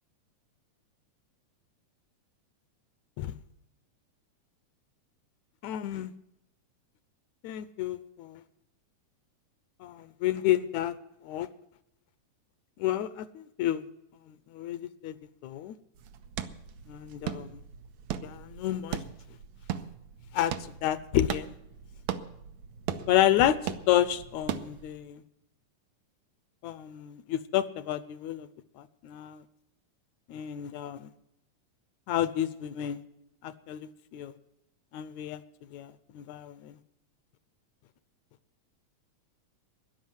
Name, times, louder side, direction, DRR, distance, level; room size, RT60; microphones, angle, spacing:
voice 1, 5.6-6.1 7.4-8.4 9.8-10.9 11.2-11.5 12.8-13.8 14.3-15.2 15.4-15.7 16.9-17.6 18.2-19.0 20.3-20.5 20.8-21.5 23.1-23.6 23.9-25.2 26.6-28.5 28.8-29.4 30.3-31.1 32.1-33.0 33.4-34.3 34.9-35.4 35.7-36.8, left 12 dB, 80° left, 15 dB, 1.9 m, -30 dB
sound 1, 15.9-25.0, right 9 dB, 70° right, 2.0 m, -39 dB
13.0 x 11.0 x 7.8 m, 0.82 s
omnidirectional pair, 3.5 m